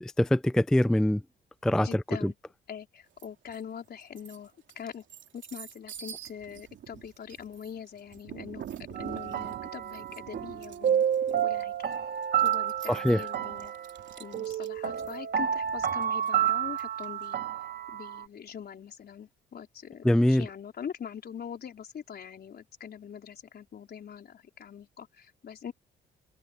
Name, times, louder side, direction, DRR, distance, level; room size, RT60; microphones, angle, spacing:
voice 1, 0.0-1.2 1.6-2.3 12.9-13.2 20.0-20.5, left 1 dB, 5° left, 0.4 m, -24 dB
voice 2, 1.8-2.3 2.7-5.0 5.3-11.9 12.4-13.7 14.2-17.5 17.9-25.7, left 8 dB, 55° left, 4.3 m, -43 dB
sound 1, 3.2-3.6 4.0-17.3, right 10 dB, 70° right, 3.1 m, -46 dB
sound 2, 8.9-18.3, right 9 dB, 55° right, 1.9 m, -30 dB
cardioid pair, 90°, 20 cm